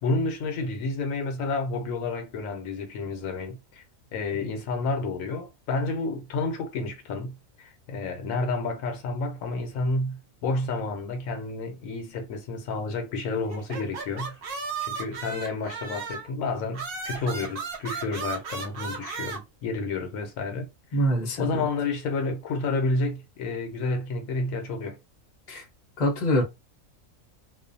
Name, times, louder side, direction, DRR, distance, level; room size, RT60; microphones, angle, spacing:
voice 1, 0.0-3.8 4.1-14.4 14.8-21.1 21.4-25.0, left 3 dB, 75° left, 1.0 m, -30 dB
sound 1, 13.5-16.3 16.7-19.4, right 5 dB, 55° right, 0.7 m, -35 dB
voice 2, 20.9-21.7 25.5-25.6 26.0-26.4, equal, 40° left, 0.7 m, -24 dB
2.4 x 2.2 x 2.6 m
omnidirectional pair, 1.4 m